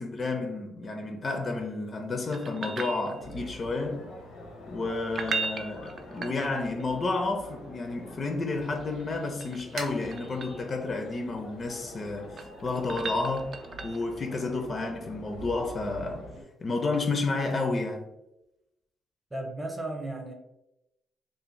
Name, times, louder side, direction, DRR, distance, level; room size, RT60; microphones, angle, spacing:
voice 1, 0.0-4.0 4.7-13.5 13.8-16.2 16.6-18.0, left 3 dB, 40° left, 0.4 m, -31 dB
sound 1, 2.3-3.6 5.0-6.9 9.0-10.7 12.1-14.2 16.9-17.0, right 4 dB, 50° right, 0.3 m, -37 dB
sound 2, 3.2-16.4, equal, 85° left, 0.6 m, -46 dB
sound 3, 7.8-13.0, right 2 dB, 80° right, 0.6 m, -48 dB
voice 2, 19.3-20.3, right 2 dB, 20° right, 0.6 m, -34 dB
2.5 x 2.1 x 3.1 m
cardioid pair, 90°, 0 cm